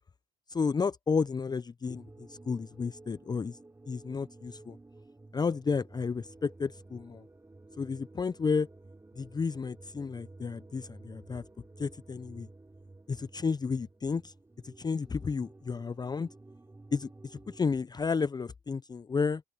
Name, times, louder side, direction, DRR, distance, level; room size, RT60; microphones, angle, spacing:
voice 1, 0.5-3.6 3.9-4.8 5.3-7.2 7.8-8.7 9.2-11.4 11.8-12.5 13.1-14.3 14.6-16.3 16.9-19.4, left 5 dB, 20° left, 0.6 m, -32 dB
sound 1, 1.9-17.6, right 2 dB, 15° right, 2.8 m, -53 dB
open air
hypercardioid pair, 65°, 19 cm